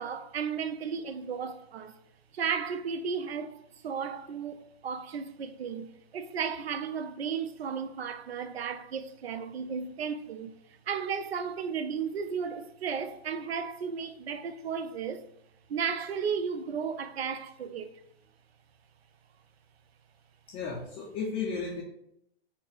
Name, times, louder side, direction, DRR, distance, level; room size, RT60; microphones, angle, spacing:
voice 1, 0.0-2.0 2.3-10.5 10.9-15.3 15.7-17.9, right 6 dB, 90° right, 0.5 m, -34 dB
voice 2, 20.5-21.8, left 5 dB, 20° left, 0.4 m, -34 dB
4.2 x 2.0 x 3.9 m
hypercardioid pair, 125°, 30 cm